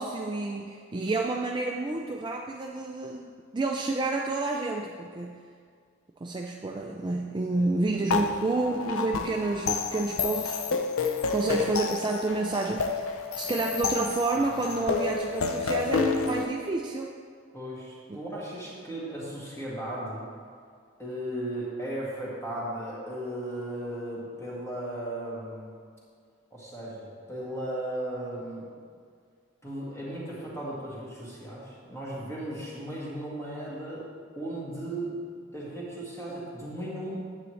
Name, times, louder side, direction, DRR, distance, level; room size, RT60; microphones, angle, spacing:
voice 1, 0.0-5.4 6.2-17.1 18.1-18.2, right 2 dB, 20° right, 0 dB, 0.3 m, -30 dB
voice 2, 7.9-8.3 11.3-11.7 17.5-20.3 21.0-25.7 26.5-28.6 29.6-34.1 34.4-35.2 35.5-37.2, right 1 dB, 15° left, -7 dB, 1.9 m, -36 dB
sound 1, 8.1-16.4, left 4 dB, 90° left, 0.5 m, -29 dB
9.5 x 8.1 x 3.2 m, 2.1 s
head